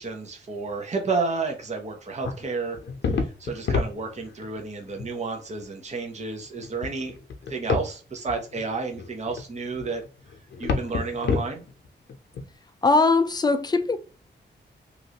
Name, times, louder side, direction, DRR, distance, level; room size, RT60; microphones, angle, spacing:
voice 1, 0.0-2.8 3.1-7.2 7.5-10.0 10.6-11.6, right 4 dB, 40° right, 0.8 m, -31 dB
sound 1, 2.2-4.6 4.8-5.1 5.6-5.7 6.4-7.9 8.3-12.5, left 4 dB, 75° left, 0.7 m, -29 dB
voice 2, 12.8-14.0, left 3 dB, 20° left, 0.4 m, -20 dB
3.0 x 2.5 x 2.8 m
wide cardioid pair, 105°, 19 cm